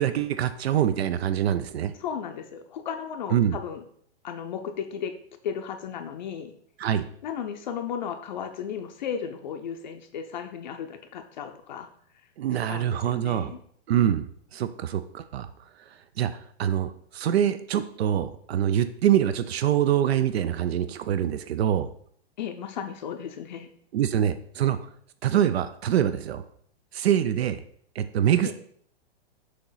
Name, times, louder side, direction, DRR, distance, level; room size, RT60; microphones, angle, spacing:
voice 1, 0.0-1.9 3.3-3.6 6.8-7.1 12.4-13.5 13.9-15.5 16.2-21.9 23.9-24.8 25.2-26.4 26.9-27.6 28.0-28.5, right 10 dB, 75° right, 11 dB, 0.6 m, -25 dB
voice 2, 2.0-3.8 4.2-5.2 5.4-6.5 7.2-11.9 12.7-13.6 22.4-23.7 28.4-28.5, left 8 dB, 45° left, 6 dB, 0.6 m, -35 dB
6.4 x 3.0 x 5.6 m, 0.62 s
hypercardioid pair, 165°, 31 cm